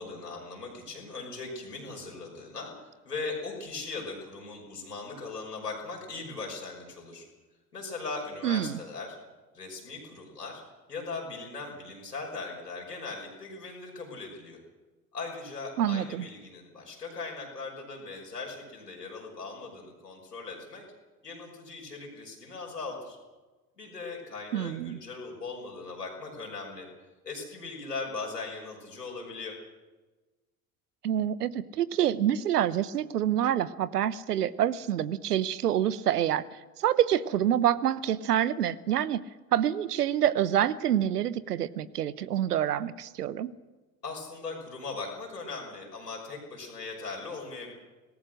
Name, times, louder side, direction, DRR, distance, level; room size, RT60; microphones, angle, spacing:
voice 1, 0.0-2.7 3.1-7.3 7.7-9.2 9.5-10.6 10.9-14.6 15.1-20.8 21.2-23.2 23.8-26.9 27.2-29.6 44.0-47.7, left 3 dB, 85° left, 0 dB, 5.9 m, -39 dB
voice 2, 8.4-8.8 15.8-16.3 24.5-25.0 31.0-39.2 39.5-43.5, right 10 dB, 75° right, 19 dB, 1.0 m, -27 dB
25.5 x 19.0 x 6.5 m, 1.2 s
figure-of-eight pair, 65°, 47 cm